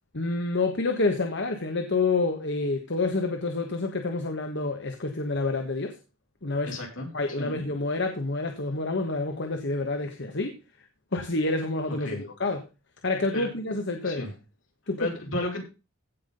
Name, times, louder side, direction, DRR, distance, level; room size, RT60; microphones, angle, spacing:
voice 1, 0.1-6.0 6.4-6.7 7.1-10.6 11.1-12.6 13.0-14.3 14.9-15.1, left 3 dB, 60° left, 1.5 m, -28 dB
voice 2, 6.7-7.1 7.4-7.6 12.0-12.2 13.3-13.5 14.0-14.3 15.0-15.6, left 2 dB, 80° left, 5.2 m, -32 dB
16.0 x 5.9 x 5.3 m
head